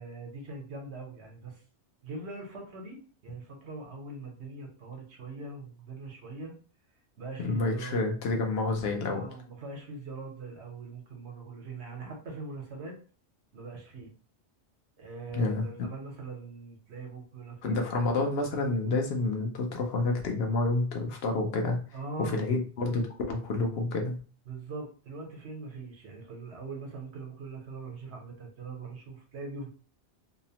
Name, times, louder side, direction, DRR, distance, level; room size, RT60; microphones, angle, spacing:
voice 1, 0.0-1.6 2.0-6.5 7.2-8.0 9.1-13.0 13.5-14.1 15.0-17.9 21.9-22.4 24.5-29.7, right 3 dB, 75° right, 1 dB, 1.0 m, -42 dB
voice 2, 7.4-9.3 15.3-15.6 17.6-21.8 22.2-24.2, left 3 dB, 65° left, 3 dB, 0.8 m, -29 dB
2.8 x 2.0 x 2.7 m, 0.40 s
omnidirectional pair, 1.2 m